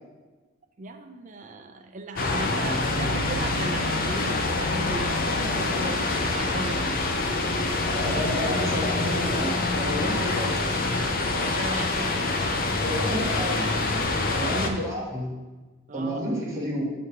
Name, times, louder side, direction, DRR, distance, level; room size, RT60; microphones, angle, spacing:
voice 1, 0.8-7.1 8.1-8.3 10.0-10.2 11.2-12.4 14.2-14.9 15.9-16.3, right 2 dB, 35° right, 5 dB, 0.4 m, -37 dB
sound 1, 2.2-14.7, left 2 dB, 40° left, 0.5 m, -26 dB
voice 2, 7.8-10.8 12.8-13.7 14.3-15.3 15.9-16.9, equal, 15° right, -6 dB, 1.3 m, -30 dB
7.0 x 3.2 x 5.6 m, 1.2 s
head